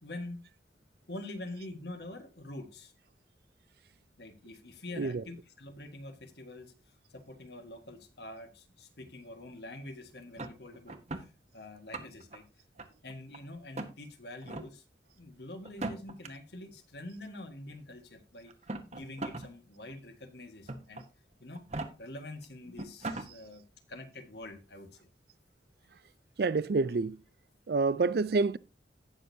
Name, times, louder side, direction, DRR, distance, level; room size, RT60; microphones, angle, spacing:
voice 1, 0.0-0.4 1.1-2.9 4.2-6.7 7.1-12.4 13.0-14.8 15.1-18.5 18.8-21.0 21.4-21.6 22.0-23.6 23.9-25.1, left 1 dB, 70° left, 1.6 m, -45 dB
sound 1, 10.4-11.3 11.7-12.4 12.8-13.4 13.7-13.9 14.4-14.7 15.6-16.3 17.3-17.4 18.5-19.5 19.9-20.0 20.7-21.0 21.5-21.9 22.4-22.5 22.8-23.3, right 2 dB, 40° right, 1.0 m, -38 dB
voice 2, 26.4-27.2 27.7-28.6, right 3 dB, 60° right, 0.4 m, -27 dB
16.5 x 6.4 x 2.7 m
head